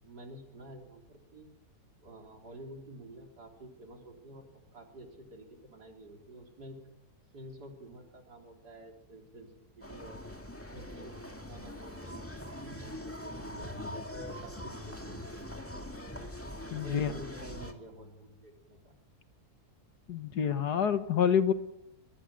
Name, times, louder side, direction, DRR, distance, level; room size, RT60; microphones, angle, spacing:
voice 1, 0.0-1.0 1.3-1.5 2.0-6.9 7.3-10.2 10.7-15.3 16.7-19.0, right 1 dB, 85° right, 2 dB, 4.5 m, -50 dB
sound 1, 9.8-17.7, left 1 dB, 10° left, 2.1 m, -42 dB
voice 2, 16.7-17.1 20.1-21.5, left 8 dB, 80° left, 10 dB, 2.0 m, -27 dB
23.5 x 21.0 x 7.6 m, 0.87 s
omnidirectional pair, 1.7 m